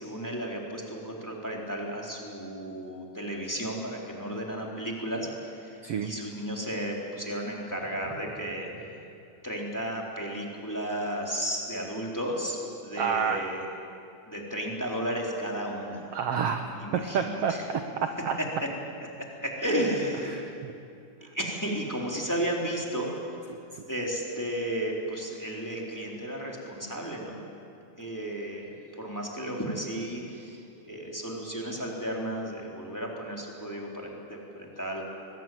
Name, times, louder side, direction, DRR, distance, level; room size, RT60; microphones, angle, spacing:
voice 1, 0.0-9.0 9.4-13.6 14.2-16.1 16.8-17.6 19.2-20.3 21.3-23.5 23.9-27.5 28.0-28.7 29.0-30.6 30.9-35.0, right 1 dB, 5° left, -1 dB, 3.2 m, -33 dB
voice 2, 13.0-13.4 16.1-16.6 17.1-18.4 20.3-20.7 23.7-23.8, right 6 dB, 65° right, 6 dB, 1.7 m, -29 dB
23.0 x 21.0 x 9.2 m, 2.5 s
omnidirectional pair, 3.7 m